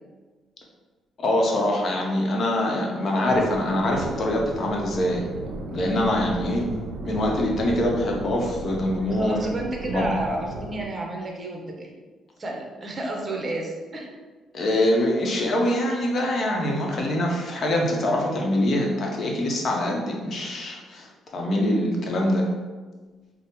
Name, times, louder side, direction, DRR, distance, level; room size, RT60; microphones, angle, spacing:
voice 1, 1.2-5.3 5.7-6.7 7.0-9.4 9.8-10.1 14.5-22.5, left 1 dB, 55° left, 0 dB, 0.7 m, -24 dB
sound 1, 3.3-10.9, right 2 dB, 65° right, 0.4 m, -35 dB
voice 2, 9.1-11.9 12.4-14.1 17.9-18.1, right 1 dB, 35° right, 0 dB, 0.8 m, -31 dB
4.7 x 2.0 x 3.0 m, 1.3 s
cardioid pair, 90°, 0 cm